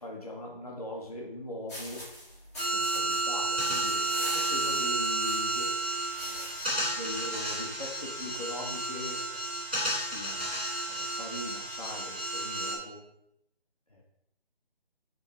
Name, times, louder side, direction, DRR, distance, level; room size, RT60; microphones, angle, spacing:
voice 1, 0.0-2.0 2.7-5.8 6.8-9.5 9.8-10.5 10.9-13.0 13.9-14.0, left 1 dB, 40° left, -2 dB, 1.2 m, -41 dB
sound 1, 1.7-6.8, equal, 15° left, 1.6 m, -44 dB
sound 2, 2.6-12.7, right 2 dB, 10° right, 1.3 m, -31 dB
10.0 x 3.6 x 4.3 m, 0.77 s
figure-of-eight pair, 180°, 30 cm